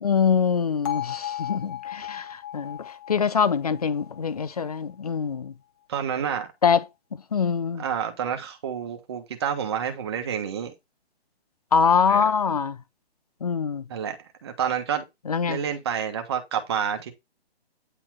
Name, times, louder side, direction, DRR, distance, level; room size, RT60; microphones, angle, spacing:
voice 1, 0.0-2.8 3.1-5.5 6.6-6.8 7.3-7.8 11.7-12.8 13.4-13.8 15.3-15.6, left 6 dB, 35° left, 0.7 m, -24 dB
Bell, 0.9-4.9, left 12 dB, 15° left, 1.2 m, -36 dB
voice 2, 5.9-6.5 7.8-10.7 12.1-12.3 13.9-14.2 14.4-15.0 15.5-17.1, right 8 dB, 25° right, 1.4 m, -29 dB
9.9 x 4.2 x 4.5 m
hypercardioid pair, 175°, 32 cm